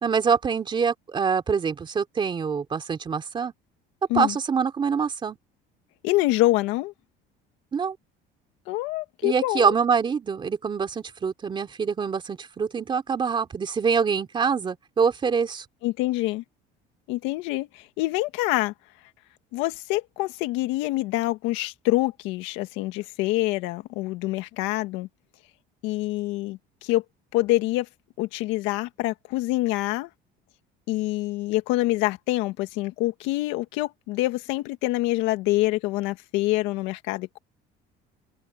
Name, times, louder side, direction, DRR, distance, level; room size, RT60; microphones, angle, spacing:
voice 1, 0.0-3.5 4.1-5.4 7.7-8.0 9.2-15.6, right 6 dB, 25° right, 3.1 m, -25 dB
voice 2, 6.0-6.9 8.7-9.7 15.8-16.4 17.1-18.7 19.5-25.1 25.8-27.0 27.3-27.9 28.2-30.1 30.9-37.4, left 18 dB, 90° left, 1.8 m, -26 dB
open air
cardioid pair, 150°, 19 cm